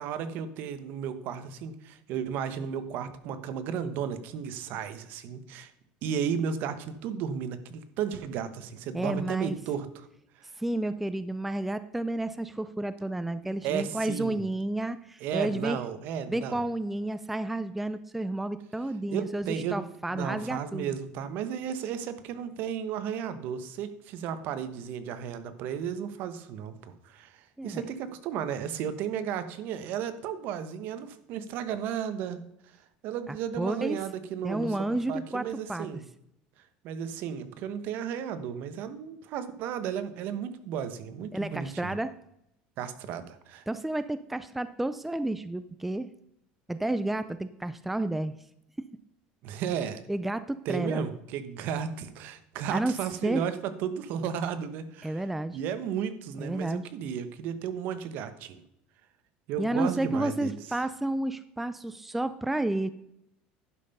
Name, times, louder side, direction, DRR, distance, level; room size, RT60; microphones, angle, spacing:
voice 1, 0.0-5.7 6.0-10.1 10.3-10.5 13.6-14.4 15.2-16.6 19.1-19.8 20.1-32.4 33.0-34.7 35.1-36.0 36.8-42.0 42.8-43.6 49.4-50.0 50.6-55.2 55.5-58.6 59.5-60.6, right 8 dB, 60° right, 11 dB, 1.0 m, -34 dB
voice 2, 8.9-9.6 10.6-15.8 16.3-21.0 27.6-27.8 33.6-34.0 34.4-35.4 35.7-35.9 41.3-42.1 43.7-46.1 46.7-48.3 50.1-51.1 52.7-52.9 53.2-53.4 55.0-55.6 56.4-56.8 59.6-62.9, right 1 dB, 5° right, 13 dB, 0.4 m, -31 dB
11.0 x 5.6 x 5.4 m, 0.78 s
cardioid pair, 135°, 4 cm